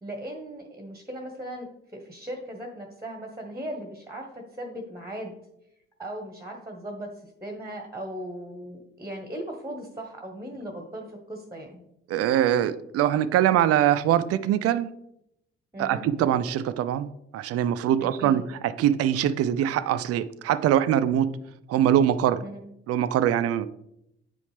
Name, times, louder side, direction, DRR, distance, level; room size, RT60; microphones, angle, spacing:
voice 1, 0.0-1.7 1.9-5.3 6.0-7.1 7.4-11.8 15.7-16.1 18.0-18.5 22.4-22.6, right 1 dB, 10° right, 3 dB, 1.3 m, -38 dB
voice 2, 12.1-14.9 15.8-17.1 17.3-18.4 18.8-21.3 21.7-22.4 22.9-23.7, right 10 dB, 50° right, 15 dB, 0.5 m, -23 dB
8.8 x 5.1 x 3.3 m, 0.80 s
figure-of-eight pair, 45°, 32 cm